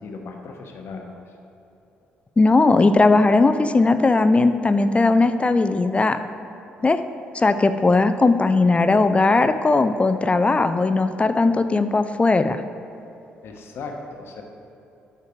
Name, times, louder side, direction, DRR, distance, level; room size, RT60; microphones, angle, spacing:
voice 1, 0.0-1.3 13.4-14.4, left 3 dB, 60° left, 2 dB, 1.0 m, -37 dB
voice 2, 2.4-6.2 6.8-7.0 7.3-12.6, left 3 dB, 25° left, 10 dB, 0.4 m, -18 dB
8.3 x 4.6 x 4.5 m, 2.8 s
hypercardioid pair, 45°, 5 cm